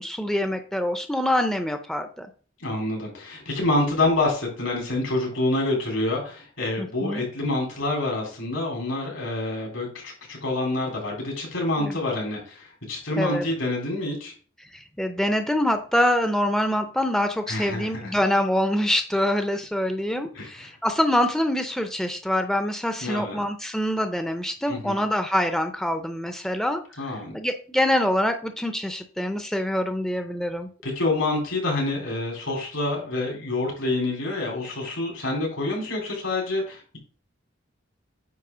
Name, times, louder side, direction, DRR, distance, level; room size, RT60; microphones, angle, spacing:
voice 1, 0.0-2.3 6.8-7.2 11.8-12.0 13.2-13.4 14.7-30.7, left 1 dB, 5° left, 7 dB, 0.6 m, -25 dB
voice 2, 2.6-14.3 17.5-18.1 20.3-20.7 23.0-23.4 24.7-25.1 27.0-27.3 30.8-37.0, left 2 dB, 75° left, 0 dB, 4.0 m, -27 dB
9.3 x 3.3 x 6.1 m, 0.41 s
head